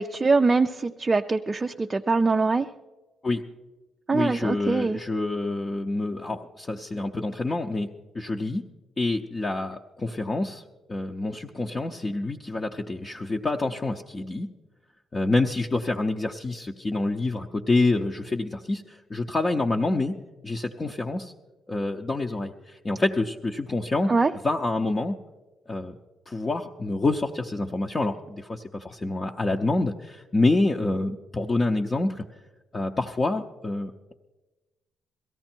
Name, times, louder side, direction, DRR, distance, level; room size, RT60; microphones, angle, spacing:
voice 1, 0.0-2.7 4.1-5.0 24.1-24.3, right 3 dB, 25° right, 5 dB, 0.4 m, -23 dB
voice 2, 4.1-7.9 8.1-8.7 9.0-14.5 15.1-20.1 20.4-21.3 21.7-24.1 24.4-25.2 25.7-26.0 26.3-32.2 32.7-34.1, left 2 dB, 30° left, 1 dB, 0.7 m, -27 dB
17.5 x 13.5 x 4.5 m, 1.1 s
cardioid pair, 90°, 0 cm